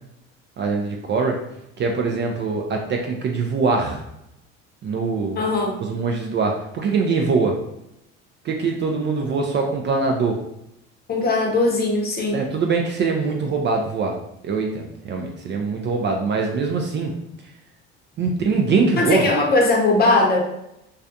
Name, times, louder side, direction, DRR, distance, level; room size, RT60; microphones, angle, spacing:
voice 1, 0.6-1.4 1.8-4.0 4.8-5.4 5.8-7.6 8.4-10.4 12.3-14.2 14.4-17.1 18.2-19.3, right 4 dB, 35° right, 2 dB, 0.4 m, -23 dB
voice 2, 5.4-5.7 11.1-12.4 19.0-20.5, left 2 dB, 30° left, 0 dB, 0.7 m, -19 dB
2.4 x 2.2 x 2.6 m, 0.83 s
supercardioid pair, 85°, 31 cm